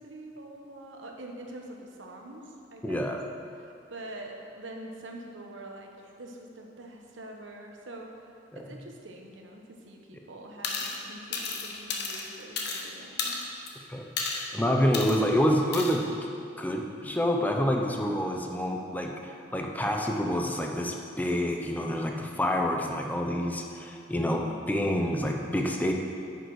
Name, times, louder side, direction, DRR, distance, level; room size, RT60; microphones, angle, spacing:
voice 1, 0.0-3.2 3.5-13.4 24.3-24.6, right 1 dB, 90° right, 1 dB, 1.1 m, -45 dB
voice 2, 2.8-3.2 8.5-8.6 13.9-14.0 14.5-16.0 16.6-25.9, equal, 10° left, 2 dB, 0.7 m, -27 dB
sound 1, 10.6-11.0 11.3-12.8 13.2-13.7 14.2-14.5 14.9-15.2 15.7-15.9, left 4 dB, 60° left, 1.0 m, -32 dB
9.2 x 6.7 x 4.8 m, 2.6 s
head